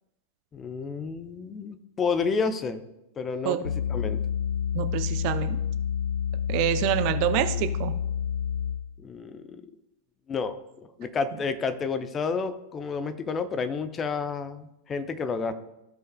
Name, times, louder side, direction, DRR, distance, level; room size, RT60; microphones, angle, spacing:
voice 1, 0.5-2.8 3.2-4.2 9.0-9.6 10.3-10.6 11.0-15.5, left 5 dB, 25° left, 11 dB, 0.6 m, -30 dB
sound 1, 3.6-8.9, left 8 dB, 70° left, 0.4 m, -29 dB
voice 2, 4.7-5.6 6.5-7.9, right 12 dB, 45° right, 10 dB, 0.5 m, -26 dB
15.5 x 5.4 x 2.3 m, 0.89 s
figure-of-eight pair, 90°, 0 cm